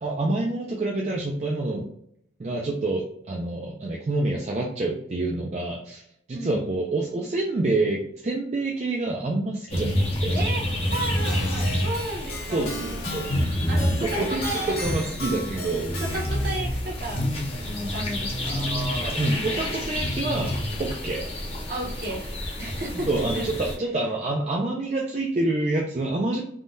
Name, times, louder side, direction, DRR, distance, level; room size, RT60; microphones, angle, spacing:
voice 1, 0.0-1.9 2.4-6.0 6.3-10.4 12.5-13.3 14.0-15.9 18.5-20.5 20.8-21.2 23.1-26.4, right 2 dB, 35° right, -1 dB, 0.4 m, -27 dB
sound 1, 9.7-23.7, left 1 dB, 30° left, 0.7 m, -28 dB
voice 2, 10.3-12.7 13.7-14.8 16.1-17.3 17.6-18.6 21.7-22.3 22.6-23.5, right 1 dB, 55° right, -3 dB, 1.0 m, -33 dB
Keyboard (musical), 10.9-16.6, left 1 dB, 55° left, 1.2 m, -37 dB
3.5 x 2.2 x 2.6 m, 0.71 s
head